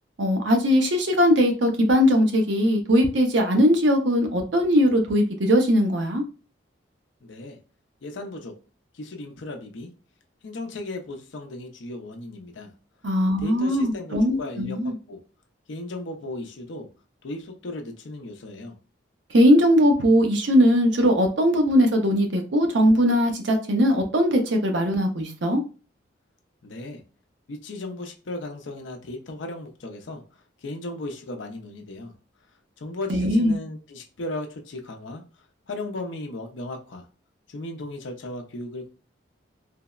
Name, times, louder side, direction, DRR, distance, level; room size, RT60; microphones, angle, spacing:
voice 1, 0.2-6.2 13.0-14.9 19.3-25.6 33.1-33.6, equal, 70° right, 4 dB, 0.6 m, -20 dB
voice 2, 7.2-7.6 8.0-8.6 8.9-9.9 10.4-12.7 13.4-15.2 15.7-16.9 17.2-18.7 26.6-27.0 27.5-32.1 32.8-35.2 35.7-37.1 37.5-38.9, left 2 dB, 75° left, 3 dB, 0.5 m, -36 dB
3.3 x 2.0 x 2.3 m, 0.34 s
head